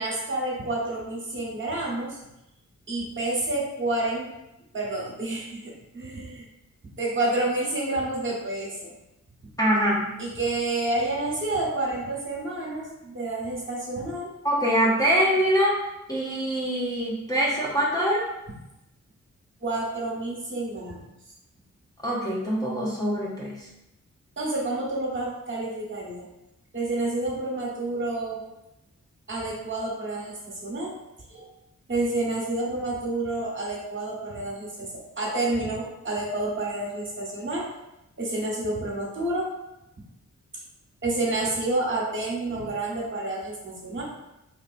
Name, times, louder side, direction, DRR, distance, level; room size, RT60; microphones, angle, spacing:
voice 1, 0.0-2.2 2.9-4.3 4.7-6.4 7.0-8.9 10.2-14.3 19.6-21.0 24.4-26.2 26.7-28.4 29.3-30.9 31.3-31.5 31.9-34.9 35.2-37.7 38.2-39.5 41.0-44.0, right 2 dB, 40° right, -4 dB, 1.2 m, -29 dB
voice 2, 9.6-10.1 14.4-15.8 16.1-18.3 22.0-23.6, equal, 10° left, -6 dB, 0.8 m, -24 dB
4.3 x 3.1 x 2.5 m, 0.91 s
wide cardioid pair, 120°, 29 cm